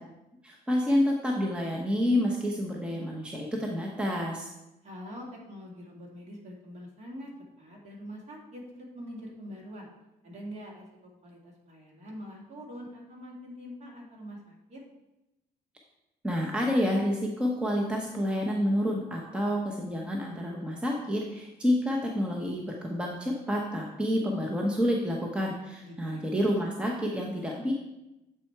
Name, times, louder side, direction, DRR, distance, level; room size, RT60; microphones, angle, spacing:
voice 1, 0.4-4.5 16.2-27.7, equal, 5° right, -1 dB, 0.8 m, -29 dB
voice 2, 4.8-7.3 7.6-9.9 10.2-14.8 25.8-26.2, equal, 40° right, -1 dB, 2.0 m, -44 dB
7.5 x 4.3 x 4.5 m, 0.94 s
cardioid pair, 110°, 17 cm